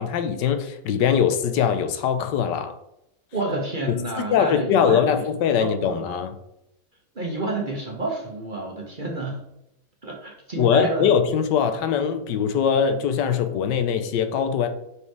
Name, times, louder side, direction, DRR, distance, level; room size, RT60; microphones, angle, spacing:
voice 1, 0.0-2.7 4.3-6.3 10.6-14.7, left 7 dB, 80° left, 8 dB, 1.3 m, -22 dB
voice 2, 3.3-5.3 5.6-6.1 7.1-9.4 10.0-11.1, right 2 dB, 35° right, 0 dB, 1.0 m, -29 dB
5.5 x 4.8 x 4.7 m, 0.81 s
omnidirectional pair, 1.9 m